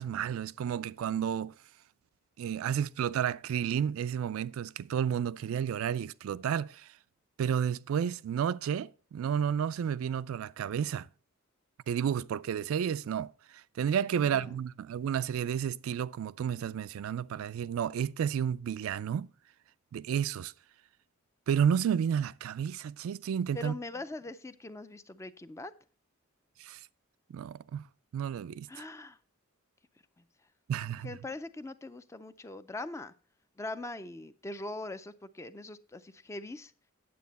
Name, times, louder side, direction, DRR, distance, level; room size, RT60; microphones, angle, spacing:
voice 1, 0.0-1.5 2.4-6.9 7.4-11.1 11.9-19.3 19.9-20.5 21.5-23.7 26.6-26.8 27.3-27.8 28.1-28.9 30.7-31.1, right 8 dB, 75° right, 0.3 m, -31 dB
voice 2, 23.5-25.7 28.7-29.2 31.0-33.1 33.6-36.7, left 2 dB, 15° left, 0.4 m, -41 dB
9.4 x 7.6 x 4.0 m
head